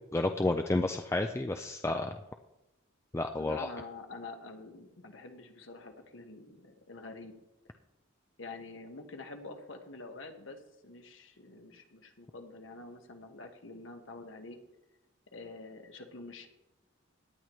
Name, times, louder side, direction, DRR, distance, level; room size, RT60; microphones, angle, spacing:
voice 1, 0.1-2.2 3.1-3.7, left 2 dB, 15° left, 6 dB, 0.3 m, -30 dB
voice 2, 3.4-7.3 8.4-14.6 15.3-16.5, left 3 dB, 70° left, 5 dB, 1.3 m, -47 dB
17.5 x 10.5 x 3.1 m, 0.97 s
head